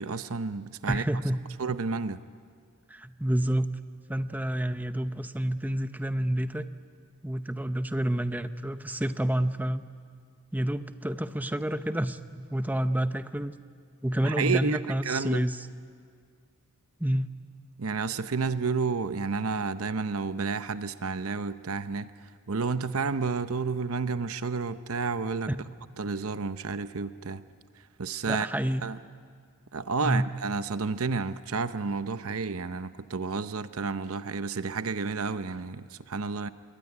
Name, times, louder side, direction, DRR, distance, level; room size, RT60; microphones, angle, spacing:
voice 1, 0.0-1.0 1.6-2.2 14.2-15.5 17.8-25.6 26.0-27.4 27.8-28.5 28.8-29.0 29.7-36.5, right 4 dB, 70° right, 12 dB, 0.7 m, -31 dB
voice 2, 0.9-1.4 2.9-3.7 4.1-6.7 7.2-9.8 10.5-13.5 14.0-15.6 17.0-17.3 25.5-25.6 28.2-28.8 30.0-30.3, right 1 dB, 10° right, 10 dB, 0.7 m, -29 dB
26.5 x 21.5 x 9.8 m, 2.1 s
head